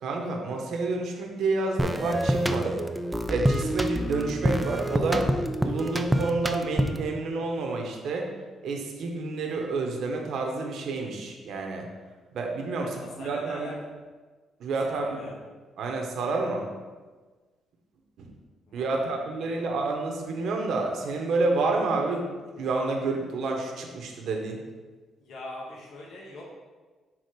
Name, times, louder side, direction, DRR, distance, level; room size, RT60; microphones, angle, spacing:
voice 1, 0.0-2.8 3.3-5.3 5.6-8.3 8.6-11.9 12.3-12.9 13.2-13.7 14.6-15.2 15.8-16.7 18.2-18.3 18.7-24.6, right 3 dB, 70° right, 1 dB, 1.0 m, -29 dB
sound 1, 1.8-7.1, right 1 dB, 10° right, 0.5 m, -27 dB
voice 2, 12.8-13.7 14.8-15.4 18.7-19.9 25.2-26.4, left 1 dB, 75° left, -3 dB, 1.4 m, -43 dB
6.2 x 3.8 x 5.1 m, 1.3 s
cardioid pair, 90°, 0 cm